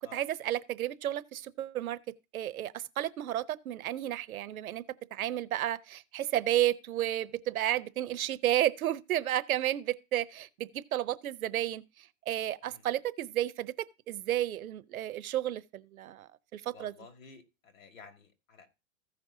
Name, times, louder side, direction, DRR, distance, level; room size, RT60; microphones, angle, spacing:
voice 1, 0.1-2.0 2.3-4.8 5.1-11.8 12.3-13.7 14.1-16.3 16.5-16.9, right 13 dB, 85° right, 0.9 m, -32 dB
voice 2, 16.7-18.7, left 5 dB, 70° left, 2.3 m, -53 dB
15.5 x 5.3 x 2.7 m
supercardioid pair, 170°, 41 cm